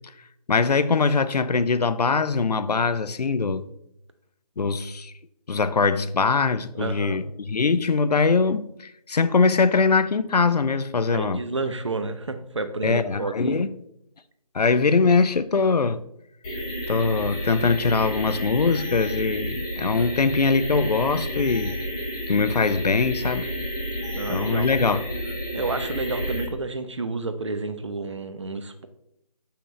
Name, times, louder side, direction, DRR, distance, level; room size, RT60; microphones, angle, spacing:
voice 1, 0.5-3.6 4.6-5.1 5.5-11.4 12.8-13.7 14.5-16.0 16.9-21.8 22.3-23.5 24.3-25.0, left 4 dB, 80° left, 0.6 m, -22 dB
voice 2, 6.7-7.2 11.1-13.6 24.1-24.7 25.5-28.9, right 3 dB, 50° right, 0.7 m, -30 dB
sound 1, 16.4-26.4, equal, 5° left, 0.7 m, -31 dB
7.1 x 5.7 x 3.2 m
figure-of-eight pair, 170°, 20 cm